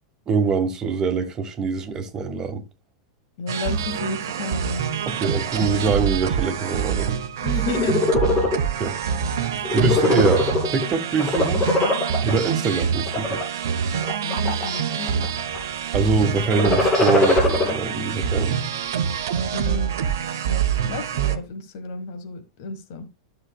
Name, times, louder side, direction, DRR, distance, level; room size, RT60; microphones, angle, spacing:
voice 1, 0.3-2.6 5.0-7.2 8.8-9.0 9.7-11.6 12.2-13.4 15.9-18.6, right 4 dB, 25° right, 1.6 m, -24 dB
voice 2, 3.4-4.8 7.4-8.0 14.2-15.3 19.5-23.1, left 4 dB, 55° left, 1.5 m, -32 dB
sound 1, 3.5-21.4, right 7 dB, 60° right, 0.9 m, -26 dB
sound 2, 7.6-8.6 9.0-9.3 9.6-10.8 11.2-12.3 13.0-13.4 14.0-14.8 15.1-15.6 16.4-17.7, left 3 dB, 25° left, 3.4 m, -21 dB
13.0 x 6.7 x 2.3 m
figure-of-eight pair, 90°, 2 cm